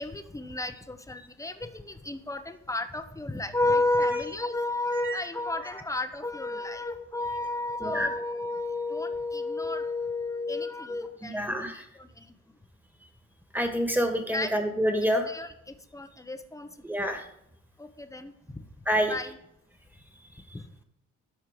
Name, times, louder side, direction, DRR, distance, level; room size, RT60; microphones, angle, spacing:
voice 1, 0.0-11.7 12.0-12.3 14.3-14.5 15.3-16.9 17.8-18.6 19.1-19.4 20.5-20.7, left 2 dB, 10° left, 9 dB, 0.9 m, -32 dB
voice 2, 11.2-11.9 13.5-15.3 16.8-17.3 18.9-19.2, equal, 5° right, 5 dB, 1.8 m, -27 dB
12.0 x 4.5 x 6.6 m, 0.78 s
cardioid pair, 90°, 30 cm